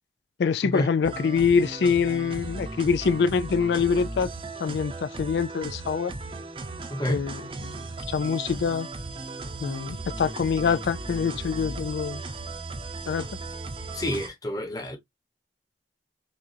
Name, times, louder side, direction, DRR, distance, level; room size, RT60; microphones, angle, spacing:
voice 1, 0.4-4.3 4.6-6.1 7.1-7.8 8.1-8.9 9.6-12.2 13.1-13.3, left 6 dB, 75° left, 0.3 m, -25 dB
sound 1, 1.0-14.3, right 3 dB, 30° right, 0.7 m, -36 dB
voice 2, 6.9-7.2 13.9-15.0, equal, 20° left, 1.1 m, -29 dB
6.1 x 2.5 x 2.7 m
head